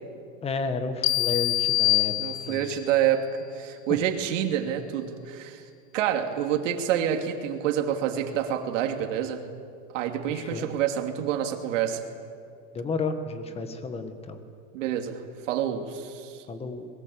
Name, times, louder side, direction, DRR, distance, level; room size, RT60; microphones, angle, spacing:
voice 1, 0.4-2.1 2.5-2.7 3.9-4.0 10.3-10.7 12.7-14.4 16.5-16.9, left 4 dB, 15° left, 8 dB, 1.7 m, -32 dB
sound 1, 1.0-2.8, left 18 dB, 45° left, 1.1 m, -25 dB
voice 2, 2.2-3.2 3.5-5.6 5.9-9.4 9.9-12.0 14.7-15.2 15.5-16.4, right 10 dB, 75° right, 4 dB, 2.9 m, -27 dB
24.0 x 21.5 x 8.6 m, 2.4 s
supercardioid pair, 165°, 38 cm